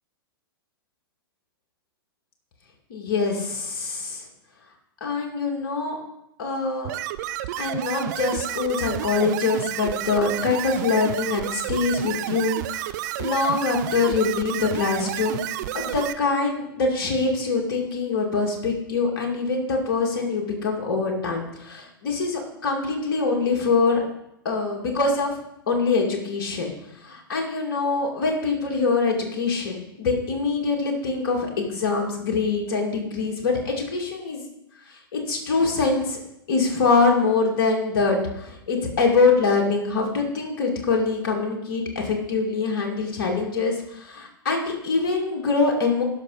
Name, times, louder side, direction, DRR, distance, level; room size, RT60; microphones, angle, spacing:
voice 1, 2.9-4.2 5.0-6.0 6.4-6.9 7.6-15.4 15.7-24.0 24.4-25.4 25.7-26.7 27.0-34.5 34.9-36.2 36.5-46.0, left 4 dB, 55° left, 0 dB, 2.4 m, -24 dB
sound 1, 6.8-16.1, right 14 dB, 50° right, 0.6 m, -31 dB
17.5 x 6.2 x 4.1 m, 0.82 s
figure-of-eight pair, 105°, 13 cm